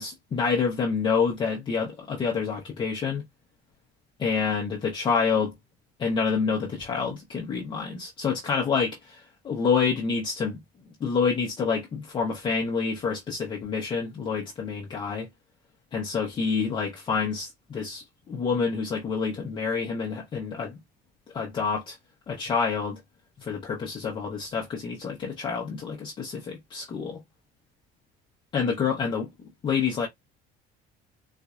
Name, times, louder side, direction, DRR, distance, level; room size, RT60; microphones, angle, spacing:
voice 1, 0.0-3.2 4.2-5.5 6.0-10.6 11.0-15.3 15.9-20.8 21.3-22.0 22.3-23.0 23.4-27.2 28.5-29.3 29.6-30.1, left 5 dB, 25° left, 0.7 m, -28 dB
4.1 x 2.6 x 2.3 m
cardioid pair, 170°, 20 cm